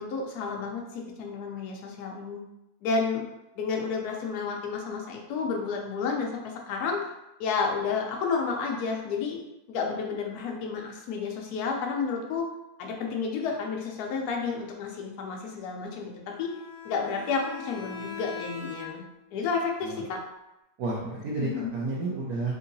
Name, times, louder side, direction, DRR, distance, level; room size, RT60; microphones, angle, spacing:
voice 1, 0.0-2.4 2.8-3.2 3.6-7.1 7.4-9.4 9.7-12.5 12.8-16.5 16.8-19.1 19.3-20.2 21.4-21.7, left 5 dB, 70° left, 1 dB, 1.1 m, -31 dB
Bowed string instrument, 16.3-19.3, left 6 dB, 50° right, 1.1 m, -41 dB
voice 2, 20.8-22.5, right 2 dB, 70° right, -5 dB, 1.1 m, -31 dB
3.7 x 2.7 x 2.6 m, 0.91 s
omnidirectional pair, 1.8 m